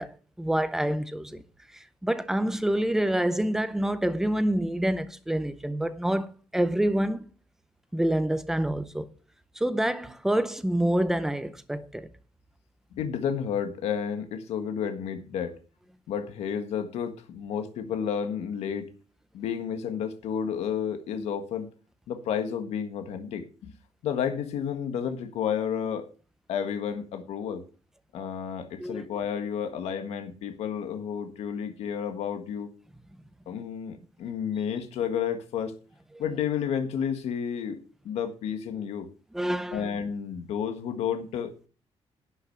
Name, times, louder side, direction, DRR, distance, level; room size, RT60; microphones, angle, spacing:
voice 1, 0.0-1.4 1.7-7.2 7.9-9.1 9.6-12.1 28.8-29.0 39.3-39.9, right 1 dB, 5° right, 0.7 m, -27 dB
voice 2, 12.9-15.5 16.1-18.9 19.3-21.7 22.1-23.7 24.0-26.1 26.5-27.6 28.1-32.7 33.5-35.7 36.2-39.1 39.7-41.7, left 8 dB, 90° left, 1.5 m, -31 dB
11.0 x 5.9 x 6.8 m
cardioid pair, 175°, 11 cm